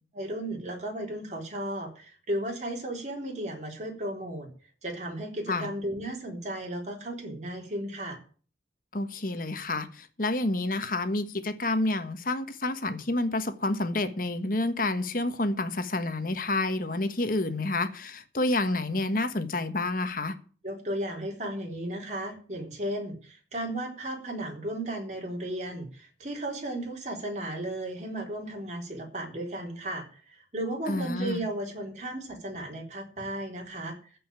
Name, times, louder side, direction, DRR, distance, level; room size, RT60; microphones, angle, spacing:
voice 1, 0.1-4.5 4.8-8.2 20.6-34.0, right 1 dB, 40° right, 3.9 m, -35 dB
voice 2, 8.9-20.3 30.9-31.4, left 2 dB, 50° left, 1.4 m, -29 dB
15.0 x 5.4 x 9.0 m
head